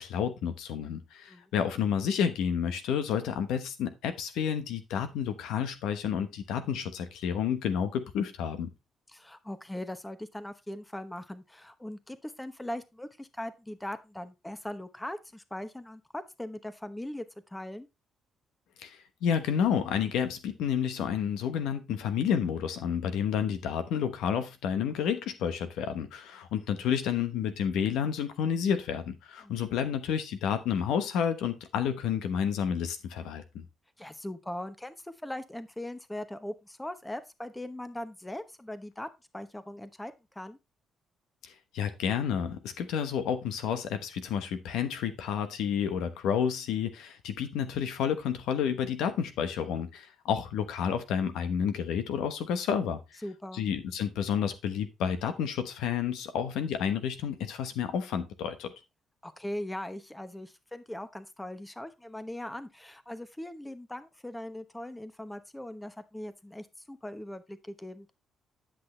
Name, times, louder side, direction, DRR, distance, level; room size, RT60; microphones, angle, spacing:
voice 1, 0.0-8.7 18.8-33.6 41.4-53.0 53.5-58.7, left 8 dB, 90° left, 1.1 m, -30 dB
voice 2, 9.1-17.9 29.4-29.6 34.0-39.1 39.3-40.6 53.2-53.7 59.2-68.1, left 1 dB, 10° left, 0.9 m, -40 dB
10.5 x 6.2 x 3.2 m
cardioid pair, 90°, 0 cm